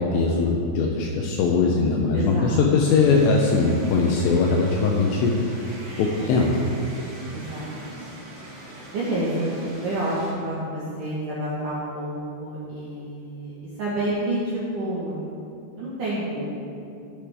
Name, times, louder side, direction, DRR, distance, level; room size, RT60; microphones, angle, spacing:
voice 1, 0.0-5.4 6.0-6.5, left 4 dB, 85° left, 0 dB, 2.5 m, -21 dB
voice 2, 2.1-2.6 6.5-6.7 7.3-7.7 8.9-9.5 9.8-13.5 13.8-15.3 15.8-16.5, right 1 dB, 70° right, -8 dB, 2.0 m, -29 dB
sound 1, 2.9-10.3, right 1 dB, 45° right, 1.5 m, -41 dB
15.5 x 6.6 x 3.5 m, 2.6 s
omnidirectional pair, 5.7 m